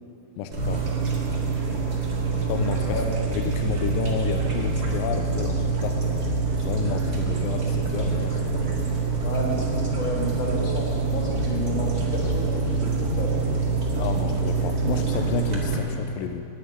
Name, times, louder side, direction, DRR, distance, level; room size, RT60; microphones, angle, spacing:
voice 1, 0.4-0.8 2.5-3.0 3.3-6.3 6.6-8.6 14.0-16.5, left 8 dB, 85° left, 6 dB, 2.3 m, -31 dB
sound 1, 0.5-15.8, right 3 dB, 35° right, 1.7 m, -25 dB
voice 2, 9.2-13.4, left 1 dB, 35° left, -3 dB, 2.5 m, -32 dB
11.5 x 9.5 x 9.5 m, 2.7 s
omnidirectional pair, 4.1 m